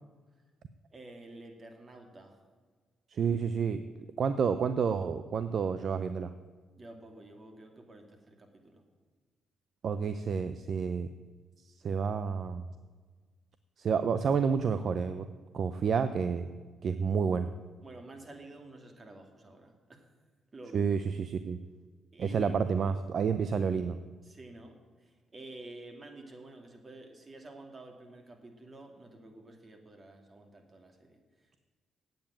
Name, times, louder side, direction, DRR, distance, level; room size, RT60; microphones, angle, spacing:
voice 1, 0.9-2.4 6.7-8.8 17.8-20.1 20.5-20.8 22.1-22.7 24.2-31.6, right 2 dB, 40° right, 3 dB, 2.5 m, -50 dB
voice 2, 3.1-3.8 4.2-6.3 9.8-11.1 11.8-12.6 13.8-15.3 15.5-16.5 16.8-17.5 20.7-21.6 22.2-24.0, right 6 dB, 60° right, 11 dB, 0.5 m, -29 dB
8.7 x 8.0 x 8.7 m, 1.4 s
supercardioid pair, 55°, 0 cm